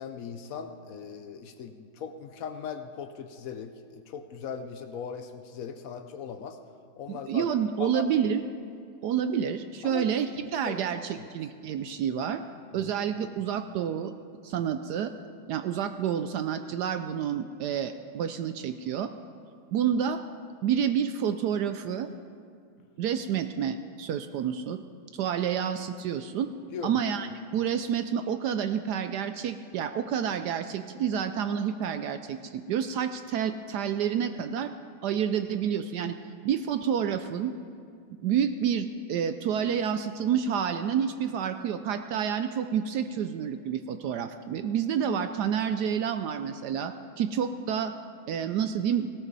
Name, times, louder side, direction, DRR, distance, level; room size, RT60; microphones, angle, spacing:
voice 1, 0.0-6.6 7.0-7.5 7.8-8.1 9.8-10.0 10.6-10.8 11.2-11.3 12.7-12.9 26.7-27.0, left 7 dB, 90° left, 7 dB, 0.7 m, -39 dB
voice 2, 7.1-8.4 9.0-12.4 12.7-14.1 14.4-15.1 15.5-19.1 19.7-20.2 20.6-22.1 23.0-24.8 25.1-26.5 26.8-34.7 35.0-36.2 36.4-37.5 38.2-47.9 48.3-49.1, right 8 dB, 85° right, 9 dB, 0.9 m, -29 dB
18.5 x 17.5 x 4.1 m, 2.3 s
omnidirectional pair, 2.3 m